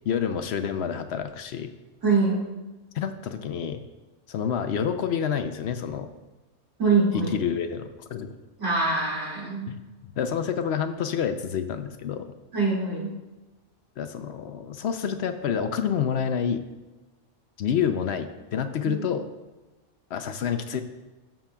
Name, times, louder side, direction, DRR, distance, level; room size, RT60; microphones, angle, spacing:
voice 1, 0.1-1.7 2.9-3.8 4.3-6.1 7.1-8.3 9.7-9.8 10.2-12.3 14.0-16.7 17.6-19.3 20.1-20.8, left 7 dB, 70° left, 8 dB, 0.8 m, -28 dB
voice 2, 2.0-2.4 6.8-7.3 8.6-9.7 12.5-13.1 18.8-18.9, right 3 dB, 85° right, -6 dB, 2.9 m, -24 dB
13.0 x 7.1 x 2.3 m, 1.1 s
omnidirectional pair, 1.2 m